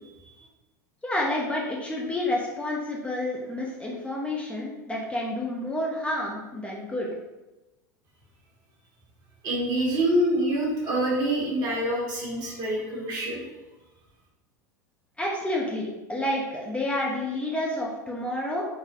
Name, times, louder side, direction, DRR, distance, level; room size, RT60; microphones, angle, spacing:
voice 1, 1.0-7.2 15.2-18.7, left 1 dB, 10° left, -3 dB, 0.6 m, -29 dB
voice 2, 9.4-13.4, right 1 dB, 40° right, -3 dB, 1.3 m, -26 dB
4.0 x 2.1 x 2.9 m, 1.0 s
hypercardioid pair, 85°, 10 cm